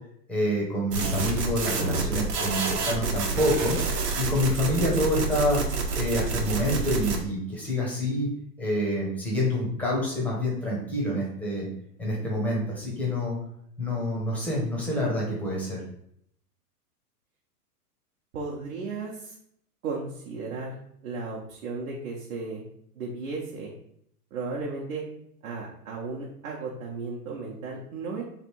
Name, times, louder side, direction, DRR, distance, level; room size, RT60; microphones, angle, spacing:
voice 1, 0.3-3.8 4.1-5.6 5.9-8.3 8.6-11.7 12.0-13.4 13.8-15.8, left 1 dB, 5° left, -4 dB, 0.6 m, -27 dB
sound 1, 0.9-7.2, right 4 dB, 80° right, 1.1 m, -28 dB
voice 2, 18.3-19.3 19.8-20.7 21.0-22.6 23.0-23.7 24.3-25.0 25.4-28.2, right 4 dB, 55° right, -3 dB, 0.9 m, -34 dB
3.3 x 2.6 x 4.4 m, 0.69 s
hypercardioid pair, 145°, 47 cm